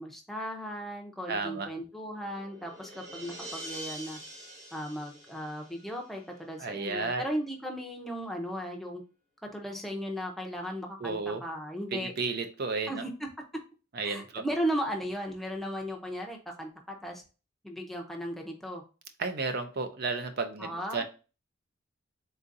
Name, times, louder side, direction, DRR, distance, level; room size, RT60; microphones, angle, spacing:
voice 1, 0.0-4.2 4.7-9.0 9.5-12.1 12.9-13.1 14.0-17.2 17.6-18.8 20.6-21.0, equal, ahead, 1 dB, 0.6 m, -36 dB
voice 2, 1.3-1.7 6.6-7.2 11.0-11.4 11.9-12.9 13.9-14.4 19.2-21.0, right 4 dB, 50° right, 8 dB, 0.4 m, -32 dB
sound 1, 2.0-6.5, right 1 dB, 85° right, 2.0 m, -45 dB
3.8 x 3.8 x 2.5 m, 0.33 s
head